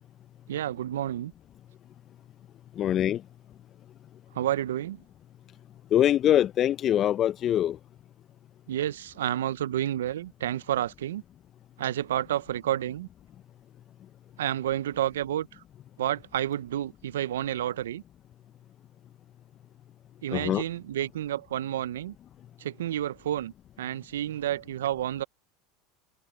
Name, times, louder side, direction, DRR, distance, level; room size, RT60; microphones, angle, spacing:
voice 1, 0.5-1.3 4.3-5.0 8.7-11.2 11.8-13.1 14.4-15.6 16.0-18.0 20.2-22.2 22.6-25.2, right 12 dB, 80° right, 0.7 m, -30 dB
voice 2, 2.8-3.2 5.9-7.8 20.3-20.6, left 11 dB, 40° left, 0.6 m, -23 dB
hypercardioid pair, 85°, 0 cm